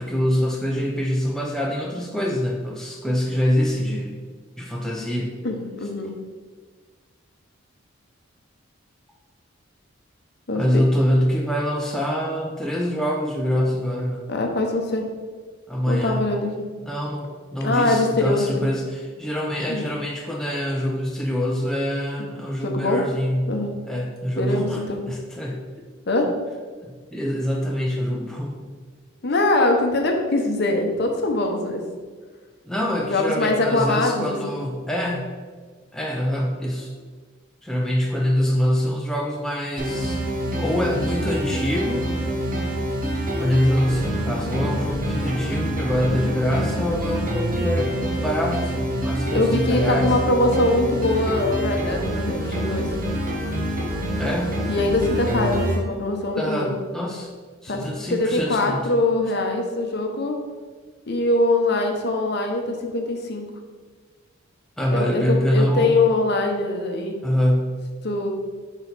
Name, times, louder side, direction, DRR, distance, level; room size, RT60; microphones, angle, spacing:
voice 1, 0.0-4.2 4.6-5.3 10.5-14.3 15.7-16.3 16.8-23.5 23.8-25.6 27.1-28.6 32.6-35.3 35.9-36.9 37.6-40.2 40.6-42.1 43.4-47.9 48.2-50.2 54.2-54.6 56.4-57.3 57.6-58.9 64.8-66.0 67.2-67.7, equal, 5° left, -2 dB, 0.5 m, -24 dB
voice 2, 5.4-6.1 10.5-10.8 14.3-15.1 15.9-16.5 17.6-18.6 19.7-19.9 22.2-22.3 22.6-23.0 23.5-23.7 24.4-25.0 26.1-26.3 29.2-31.8 33.1-34.5 49.3-52.9 54.7-56.7 57.7-60.4 61.1-63.5 64.9-67.2 68.0-68.3, left 2 dB, 50° left, 3 dB, 0.8 m, -23 dB
sound 1, 39.8-55.8, equal, 40° right, 0.9 m, -26 dB
6.3 x 4.0 x 4.1 m, 1.5 s
head